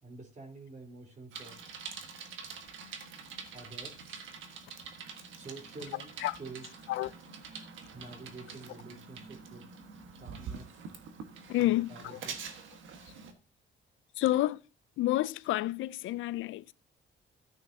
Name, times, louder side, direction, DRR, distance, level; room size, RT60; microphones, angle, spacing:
voice 1, 0.0-1.6 3.5-4.1 5.3-6.1 6.4-6.7 7.9-9.6 10.2-10.8 11.6-12.4, right 3 dB, 40° right, 4.0 m, -48 dB
Bicycle, 1.3-13.3, right 5 dB, 80° right, 1.5 m, -46 dB
voice 2, 11.5-12.2 14.2-14.6 15.0-16.7, left 15 dB, 80° left, 0.4 m, -29 dB
14.0 x 9.0 x 2.8 m
cardioid pair, 90°, 20 cm